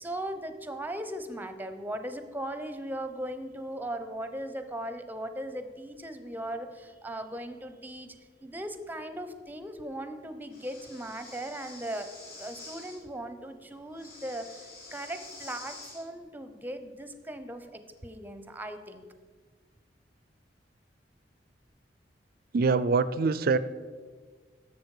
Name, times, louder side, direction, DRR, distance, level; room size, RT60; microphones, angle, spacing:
voice 1, 0.0-8.1 8.4-12.1 12.4-19.0, right 1 dB, 10° right, 9 dB, 0.7 m, -38 dB
Breathing, 10.5-13.0 13.9-16.0, left 3 dB, 60° left, 2.2 m, -47 dB
voice 2, 22.5-23.6, right 4 dB, 55° right, 15 dB, 0.4 m, -24 dB
11.0 x 7.1 x 4.8 m, 1.5 s
head